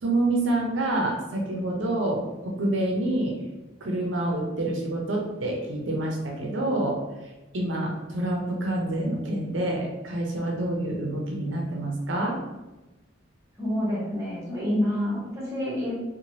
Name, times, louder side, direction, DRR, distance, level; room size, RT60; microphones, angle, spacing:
voice 1, 0.0-3.4 3.8-12.4, right 1 dB, 85° right, 0 dB, 0.6 m, -27 dB
voice 2, 13.6-15.9, left 1 dB, 15° right, -7 dB, 0.9 m, -28 dB
2.7 x 2.2 x 3.0 m, 1.0 s
head